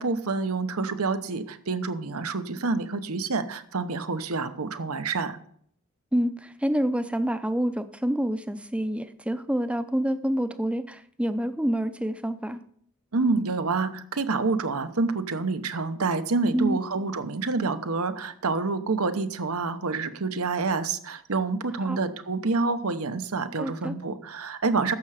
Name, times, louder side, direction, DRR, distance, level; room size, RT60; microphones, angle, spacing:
voice 1, 0.0-5.4 13.1-24.9, right 3 dB, 85° right, 10 dB, 0.9 m, -27 dB
voice 2, 6.1-12.6 16.5-16.8 21.9-22.0 23.6-23.9, equal, 5° right, 10 dB, 0.5 m, -27 dB
11.5 x 7.6 x 4.9 m, 0.63 s
head